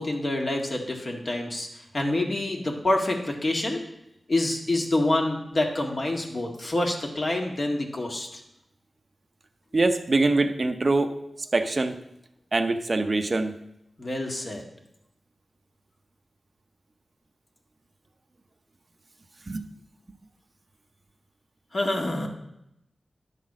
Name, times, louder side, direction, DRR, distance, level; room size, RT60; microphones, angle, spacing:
voice 1, 0.0-3.8 4.3-8.4 14.0-14.6 21.7-22.3, left 1 dB, 50° left, 1 dB, 1.8 m, -27 dB
voice 2, 9.7-11.2 11.5-12.0 12.5-13.6 19.5-19.7, right 2 dB, 45° right, 7 dB, 0.7 m, -23 dB
11.0 x 4.1 x 7.4 m, 0.83 s
wide cardioid pair, 75°, 0 cm